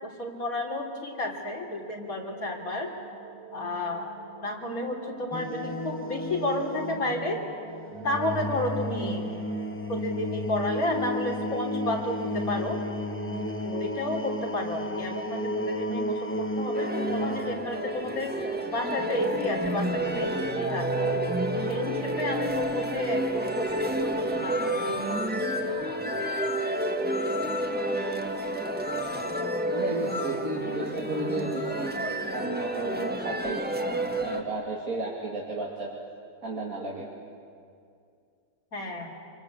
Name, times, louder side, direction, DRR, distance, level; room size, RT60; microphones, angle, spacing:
voice 1, 0.0-2.9 3.5-4.1 4.4-7.4 8.0-9.3 9.9-12.8 13.6-18.3 18.7-21.2 21.6-25.3 38.7-39.1, left 1 dB, 75° left, 0 dB, 3.7 m, -31 dB
sound 1, 1.6-16.6, right 4 dB, 25° right, 1.7 m, -45 dB
sound 2, 5.3-20.6, left 1 dB, 10° left, 0.8 m, -33 dB
sound 3, 16.7-34.4, right 1 dB, 5° right, 1.3 m, -30 dB
voice 2, 29.7-31.9 32.3-33.7 34.0-35.9 36.4-37.1, right 2 dB, 75° right, -4 dB, 3.0 m, -33 dB
26.5 x 23.0 x 8.3 m, 2.4 s
omnidirectional pair, 1.5 m